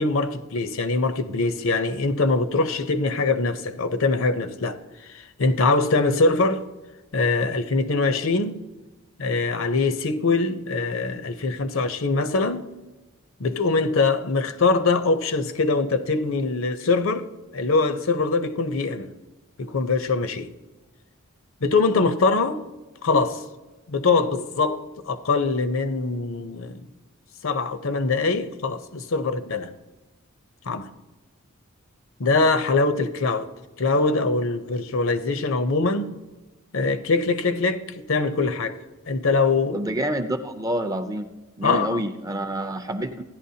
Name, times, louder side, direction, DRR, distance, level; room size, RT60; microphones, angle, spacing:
voice 1, 0.0-6.6 7.1-8.6 9.2-12.7 13.4-17.3 17.5-19.1 19.6-20.5 21.6-22.6 23.0-23.4 23.9-26.8 27.4-29.7 30.7-30.9 32.2-33.5 33.8-36.1 36.7-38.8 39.1-39.8 41.6-42.0, left 3 dB, 65° left, 0.7 m, -23 dB
voice 2, 39.7-41.3 41.6-43.2, right 1 dB, 15° right, 0.5 m, -27 dB
16.0 x 11.0 x 2.8 m
head